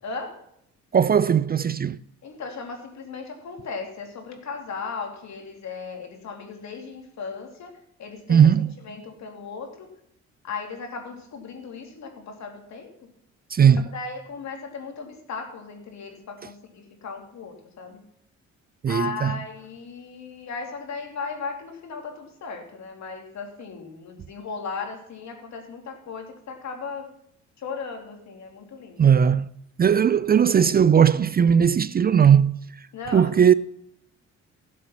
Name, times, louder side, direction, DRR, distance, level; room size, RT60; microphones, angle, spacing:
voice 1, 0.0-0.4 2.2-7.7 8.0-8.5 8.8-9.9 10.4-13.1 13.9-18.0 18.9-27.1 27.6-29.1 32.9-33.3, left 4 dB, 65° left, 3.0 m, -36 dB
voice 2, 0.9-2.0 8.3-8.7 13.5-13.8 18.8-19.4 29.0-29.5 29.8-32.5 33.1-33.5, right 8 dB, 30° right, 0.4 m, -18 dB
16.0 x 7.6 x 5.8 m
cardioid pair, 90°, 30 cm